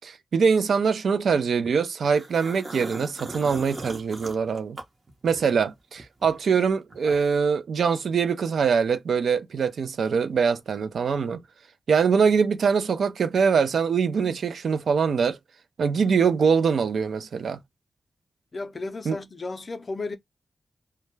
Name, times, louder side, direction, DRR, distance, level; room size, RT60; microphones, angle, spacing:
voice 1, 0.0-4.8 5.2-11.4 11.9-15.4 15.8-17.6 19.1-19.2, right 6 dB, 85° right, 0.3 m, -23 dB
sound 1, 2.0-5.6 6.0-7.5, right 2 dB, 40° right, 0.7 m, -39 dB
voice 2, 18.5-20.2, left 3 dB, 45° left, 0.5 m, -33 dB
2.2 x 2.1 x 3.0 m
wide cardioid pair, 85°, 0 cm